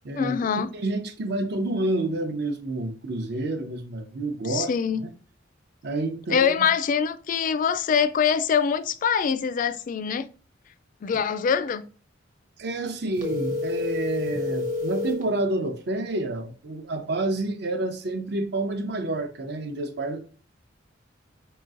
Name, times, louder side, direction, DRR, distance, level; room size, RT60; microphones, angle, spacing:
voice 1, 0.2-0.7 4.5-5.0 6.3-10.3 11.0-11.8, left 7 dB, 45° left, 0.3 m, -24 dB
voice 2, 0.7-4.7 5.0-5.1 5.8-6.7 12.6-20.2, right 2 dB, 60° right, 0.7 m, -29 dB
sound 1, 13.2-15.3, left 3 dB, 40° right, 1.2 m, -28 dB
5.4 x 3.0 x 2.5 m
head